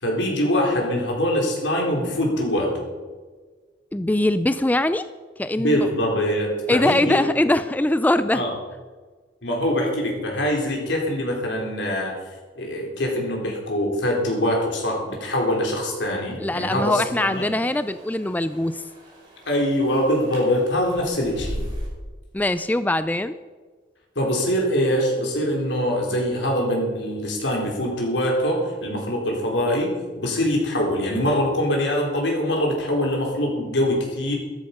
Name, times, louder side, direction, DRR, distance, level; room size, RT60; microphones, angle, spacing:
voice 1, 0.0-2.8 5.6-7.2 8.3-8.5 9.4-12.1 12.6-17.5 19.5-21.6 24.2-34.3, equal, 80° left, 0 dB, 4.2 m, -23 dB
voice 2, 3.9-5.1 5.4-5.8 6.7-8.4 16.4-18.8 22.3-23.3, left 1 dB, 10° left, 13 dB, 0.3 m, -22 dB
sound 1, 16.7-21.9, equal, 25° right, 5.6 m, -38 dB
13.5 x 13.0 x 5.4 m, 1.4 s
head